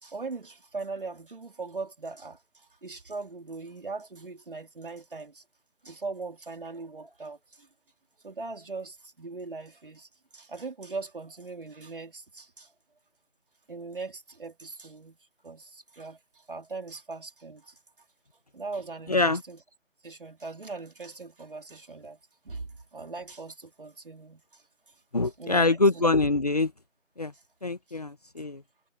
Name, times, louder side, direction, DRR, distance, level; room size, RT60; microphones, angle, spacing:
voice 1, 0.0-5.4 5.8-7.7 8.2-12.7 13.7-15.2 15.4-17.8 18.5-19.6 20.0-22.2 22.4-25.0 25.2-26.1 27.3-27.4 27.9-28.0 28.4-28.5, right 3 dB, 40° right, 3.9 m, -40 dB
voice 2, 19.1-19.4 25.1-26.7 27.2-27.3 27.6-28.6, left 3 dB, 30° left, 1.7 m, -24 dB
figure-of-eight pair, 170°, 40 cm